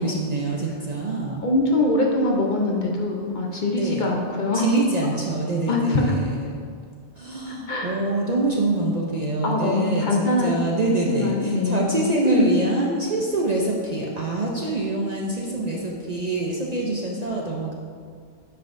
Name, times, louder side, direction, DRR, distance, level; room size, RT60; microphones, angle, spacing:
voice 1, 0.0-1.4 3.7-4.1 4.5-6.6 7.2-17.7, right 2 dB, 45° right, -2 dB, 0.6 m, -25 dB
voice 2, 1.4-4.6 5.7-6.2 7.7-8.0 9.4-10.5 11.1-12.0 12.2-12.4, left 2 dB, 50° left, -1 dB, 0.8 m, -23 dB
8.9 x 5.6 x 2.6 m, 2.1 s
omnidirectional pair, 1.2 m